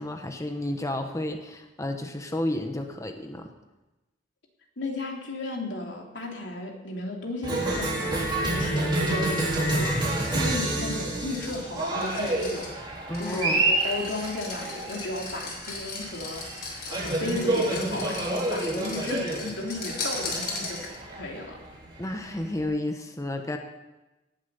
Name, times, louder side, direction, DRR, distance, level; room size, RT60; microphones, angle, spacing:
voice 1, 0.0-3.5 10.3-10.6 13.1-13.6 22.0-23.6, left 1 dB, 20° left, 5 dB, 1.1 m, -31 dB
voice 2, 4.8-20.9 21.2-21.6, left 2 dB, 90° left, 0 dB, 3.0 m, -34 dB
Cheering, 7.4-22.6, right 2 dB, 25° right, 3.9 m, -29 dB
sound 1, 9.8-21.2, left 3 dB, 60° left, 3.8 m, -39 dB
18.0 x 7.7 x 6.8 m, 1.1 s
head